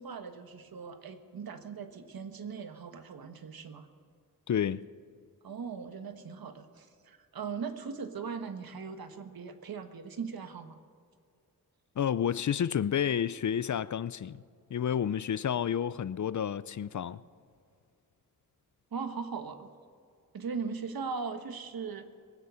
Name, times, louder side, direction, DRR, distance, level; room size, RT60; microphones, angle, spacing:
voice 1, 0.0-3.9 5.4-10.8 18.9-19.7 20.3-22.1, right 5 dB, 75° right, 1.3 m, -39 dB
voice 2, 4.5-4.8 12.0-14.4 14.7-17.2, left 9 dB, 55° left, 0.5 m, -30 dB
22.0 x 9.5 x 5.7 m
wide cardioid pair, 85°, 36 cm